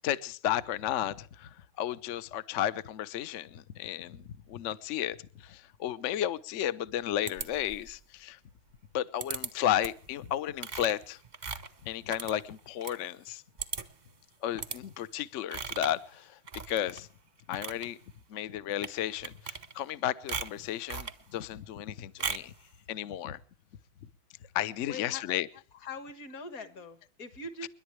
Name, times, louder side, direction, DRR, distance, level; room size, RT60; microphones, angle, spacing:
voice 1, 0.0-1.5 1.8-5.2 5.4-8.4 8.9-11.2 11.8-13.4 14.4-16.3 16.7-17.1 17.5-18.0 18.3-22.5 22.9-23.4 24.5-25.5 27.6-27.7, left 11 dB, 75° left, 0.6 m, -33 dB
sound 1, 7.3-8.0 9.2-9.5 9.8-10.1 10.6-13.0 13.3-13.4 13.6-14.0 14.6-14.8 15.5-16.0 16.5-17.0 17.4-17.9 18.7-19.0 19.2-20.0 20.3-21.2 22.2-22.6, right 5 dB, 35° right, 0.7 m, -38 dB
voice 2, 24.8-25.2 25.7-27.7, left 3 dB, 45° left, 1.9 m, -42 dB
29.5 x 11.0 x 3.2 m
omnidirectional pair, 2.3 m